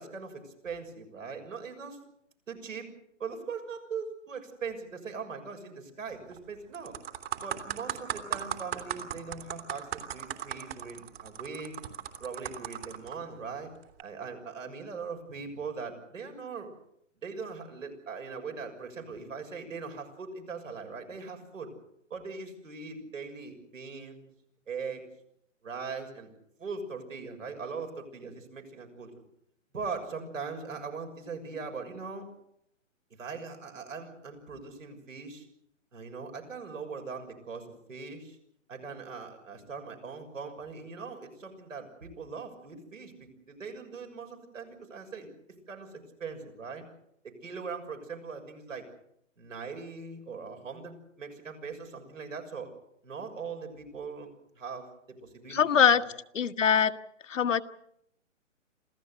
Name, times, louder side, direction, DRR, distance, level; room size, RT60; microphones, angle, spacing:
voice 1, 0.0-2.0 2.5-2.9 3.2-6.9 7.4-11.7 12.2-13.7 14.0-16.7 17.2-21.7 22.1-24.3 24.7-25.0 25.6-26.3 26.6-29.1 29.7-32.3 33.1-35.4 35.9-38.4 38.7-45.3 45.7-46.8 47.2-48.8 49.4-52.7 53.0-54.3 54.5-55.7 56.0-56.1, right 5 dB, 80° right, 4 dB, 6.7 m, -40 dB
sound 1, 6.1-6.4 6.7-13.1 13.8-14.0, right 10 dB, 50° right, 3.0 m, -37 dB
voice 2, 55.5-56.0 56.3-56.9 57.3-57.6, left 8 dB, 75° left, 9 dB, 1.4 m, -22 dB
27.0 x 16.0 x 8.1 m, 0.73 s
hypercardioid pair, 140°, 39 cm